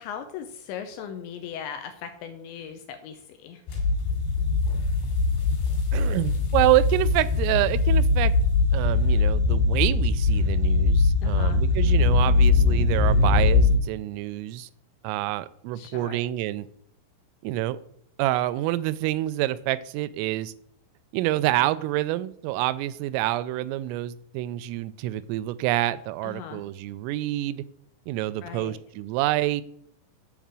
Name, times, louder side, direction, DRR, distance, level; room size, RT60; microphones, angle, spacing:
voice 1, 0.0-3.6 11.2-11.6 15.8-16.2 26.2-26.6 28.4-28.8, left 8 dB, 80° left, 7 dB, 2.7 m, -38 dB
sound 1, 3.7-13.8, left 3 dB, 55° left, 4.3 m, -21 dB
voice 2, 5.9-8.3 8.7-14.7 15.0-16.7 17.4-17.8 18.2-20.5 21.1-27.6 28.1-29.6, right 16 dB, 85° right, 16 dB, 3.0 m, -27 dB
8.3 x 5.3 x 7.4 m, 0.67 s
omnidirectional pair, 6.0 m